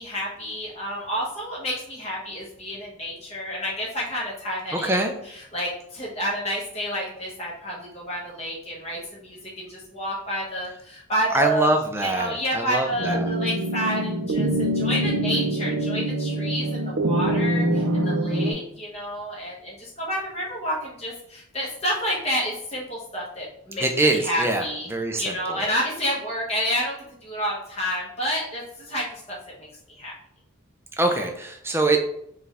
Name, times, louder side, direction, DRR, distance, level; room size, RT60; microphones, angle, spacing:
voice 1, 0.0-5.0 5.5-11.7 12.0-24.9 25.1-27.0 27.2-29.7 30.0-30.1, equal, 30° left, -5 dB, 1.1 m, -29 dB
voice 2, 4.7-5.1 11.3-13.3 23.8-25.6 31.0-32.0, right 2 dB, 10° right, 4 dB, 0.4 m, -24 dB
sound 1, 13.0-18.5, right 1 dB, 60° right, 0.6 m, -24 dB
4.8 x 2.4 x 3.3 m, 0.73 s
head